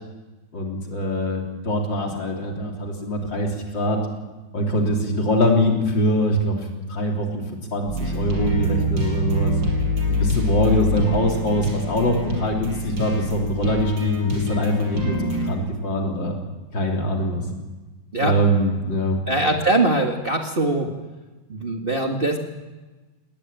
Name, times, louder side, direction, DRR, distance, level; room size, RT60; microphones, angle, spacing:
voice 1, 0.5-4.0 4.5-6.6 6.9-7.4 7.7-9.5 10.1-16.4 16.7-17.4 18.2-19.2, equal, 60° left, 1 dB, 4.2 m, -23 dB
sound 1, 7.9-15.5, left 1 dB, 60° right, 5.7 m, -25 dB
voice 2, 19.3-20.9 21.5-22.4, right 2 dB, 30° right, 2 dB, 1.8 m, -22 dB
20.0 x 18.5 x 9.0 m, 1.2 s
omnidirectional pair, 2.3 m